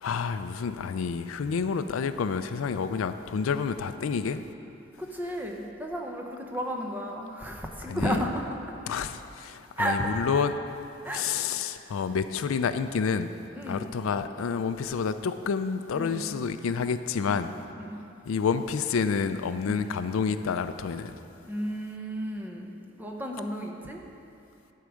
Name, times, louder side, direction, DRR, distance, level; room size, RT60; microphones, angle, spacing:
voice 1, 0.0-4.4 7.9-8.2 8.9-10.5 11.1-13.3 13.7-17.5 18.3-21.2, left 6 dB, 90° left, 11 dB, 0.4 m, -29 dB
voice 2, 5.0-8.6 9.8-10.5 11.0-11.4 13.5-14.0 15.9-16.3 17.3-17.4 17.8-18.0 19.6-19.9 21.4-24.0, equal, 10° right, 1 dB, 0.8 m, -33 dB
11.5 x 4.8 x 6.3 m, 2.8 s
head